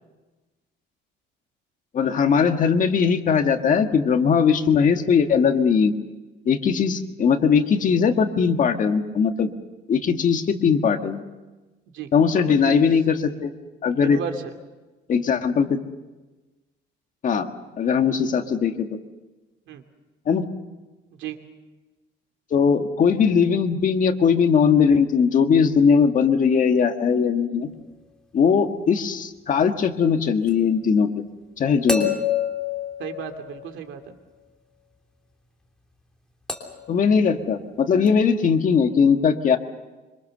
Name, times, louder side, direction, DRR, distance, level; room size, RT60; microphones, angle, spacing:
voice 1, 1.9-5.9 6.5-9.5 9.9-11.2 12.1-13.5 13.8-14.2 15.1-15.8 17.2-17.5 17.8-19.0 20.3-20.5 22.5-27.7 28.3-31.2 31.6-32.1 36.9-39.6, left 6 dB, 40° left, 5 dB, 1.8 m, -20 dB
voice 2, 11.9-12.9 13.9-14.5 19.7-19.8 21.2-21.4 33.0-34.1, right 8 dB, 70° right, 6 dB, 2.9 m, -34 dB
sound 1, 30.5-30.6 31.9-33.9 36.5-36.9 38.1-38.2, left 6 dB, 5° left, 3.1 m, -27 dB
26.0 x 26.0 x 6.8 m, 1.2 s
cardioid pair, 155°, 20 cm